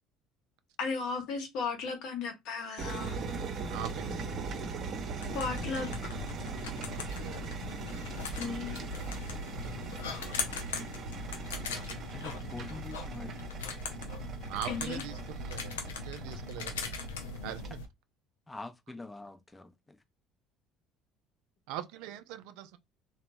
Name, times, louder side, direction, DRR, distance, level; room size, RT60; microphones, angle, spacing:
voice 1, 0.8-3.2 5.3-5.9 8.4-8.8 14.7-15.0, left 4 dB, 70° left, 0.9 m, -35 dB
sound 1, 2.8-17.7, right 4 dB, 50° right, 0.8 m, -40 dB
voice 2, 3.7-4.3 6.8-7.5 12.5-12.7 14.5-16.9 17.4-17.8 21.7-22.8, right 12 dB, 75° right, 0.3 m, -42 dB
sound 2, 5.2-17.9, left 4 dB, 90° left, 0.5 m, -40 dB
voice 3, 12.1-13.5 16.3-16.4 18.5-20.0, left 2 dB, 15° left, 0.5 m, -45 dB
2.9 x 2.2 x 2.6 m
hypercardioid pair, 70°, 0 cm